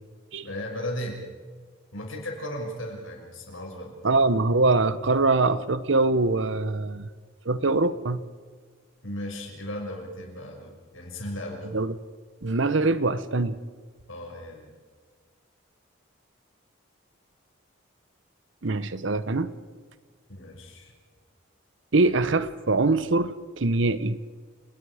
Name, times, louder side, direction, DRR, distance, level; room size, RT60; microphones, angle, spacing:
voice 1, 0.4-1.2 1.9-4.0 9.0-11.7 14.1-14.7 20.3-20.9, left 1 dB, 75° left, 0 dB, 6.1 m, -36 dB
voice 2, 4.0-7.1 7.4-8.2 11.7-12.0 12.4-13.6 18.6-19.5 21.9-24.2, right 3 dB, 65° right, 15 dB, 0.9 m, -23 dB
29.5 x 19.5 x 4.9 m, 1.5 s
head